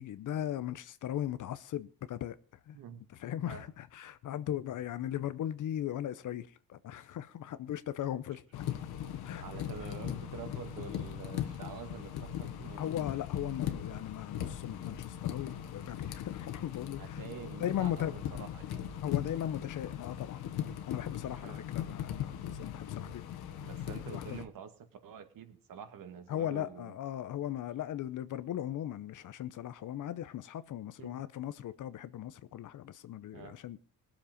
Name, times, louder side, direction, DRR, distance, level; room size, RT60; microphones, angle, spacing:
voice 1, 0.0-2.4 2.7-2.8 3.1-8.6 9.2-9.4 12.8-17.2 17.6-18.1 19.0-20.4 20.9-23.2 24.1-24.4 26.3-33.8, left 11 dB, 55° left, 0.7 m, -38 dB
sound 1, 8.5-24.5, left 10 dB, 80° left, 1.6 m, -39 dB
voice 2, 9.4-12.8 17.0-18.8 21.3-21.6 23.6-24.7 25.0-26.9 31.0-31.2 33.3-33.6, right 7 dB, 60° right, 2.0 m, -47 dB
20.5 x 7.4 x 5.2 m
cardioid pair, 140°, 37 cm